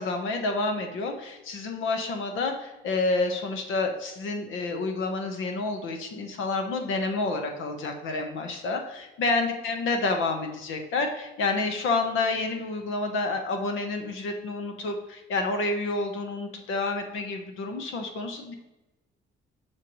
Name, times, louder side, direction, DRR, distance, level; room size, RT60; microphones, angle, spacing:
voice 1, 0.0-18.5, left 3 dB, 85° left, 4 dB, 1.2 m, -29 dB
7.6 x 5.8 x 3.1 m, 1.0 s
cardioid pair, 90°, 20 cm